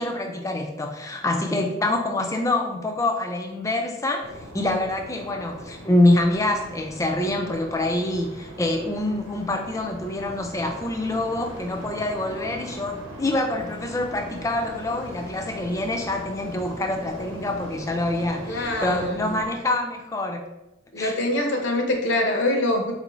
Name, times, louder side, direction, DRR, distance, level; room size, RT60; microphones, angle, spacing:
voice 1, 0.0-20.4 21.0-21.2, left 2 dB, 15° left, 3 dB, 0.3 m, -25 dB
sound 1, 4.2-19.5, equal, 85° right, 0.9 m, -40 dB
voice 2, 18.5-19.4 20.9-22.9, left 1 dB, 65° left, 2 dB, 0.6 m, -24 dB
4.0 x 2.5 x 3.0 m, 1.0 s
head